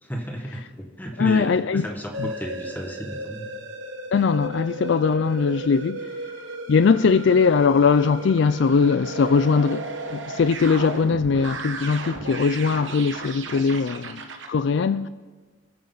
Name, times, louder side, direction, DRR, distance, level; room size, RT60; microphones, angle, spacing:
voice 1, 0.0-3.5, equal, 10° left, 1.5 m, -33 dB
voice 2, 1.2-1.8 2.2-2.3 4.1-6.1 6.7-14.2 14.5-15.1, left 5 dB, 60° left, 0.4 m, -20 dB
sound 1, 2.1-14.5, right 2 dB, 65° right, 1.2 m, -35 dB
27.5 x 9.7 x 4.0 m
head